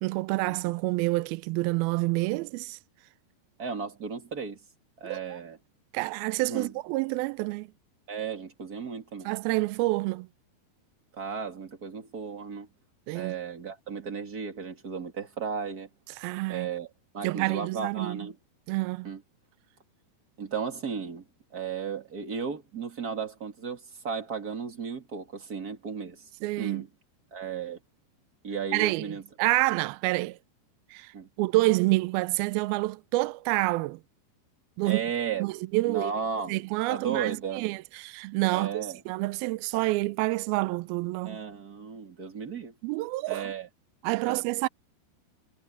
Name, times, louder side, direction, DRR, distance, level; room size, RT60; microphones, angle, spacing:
voice 1, 0.0-2.8 5.0-5.2 5.9-7.7 9.3-10.3 13.1-13.3 16.2-16.7 17.2-18.2 18.7-19.1 26.4-26.8 28.7-29.0 29.4-30.4 30.9-31.1 31.4-34.0 34.8-35.0 35.4-36.1 36.5-41.4 42.8-43.5 44.0-44.7, right 21 dB, 80° right, 2.2 m, -28 dB
voice 2, 3.6-4.6 5.0-5.6 6.5-6.7 8.1-9.3 11.1-12.7 13.1-15.9 16.5-16.9 17.1-18.4 19.0-19.2 20.4-21.2 21.5-26.3 26.6-26.9 27.3-27.8 28.4-29.2 31.1-31.3 34.8-35.4 35.8-36.6 36.9-37.7 38.5-39.0 41.2-42.7 43.3-43.7 44.2-44.4, right 6 dB, 30° right, 1.9 m, -35 dB
omnidirectional pair, 4.9 m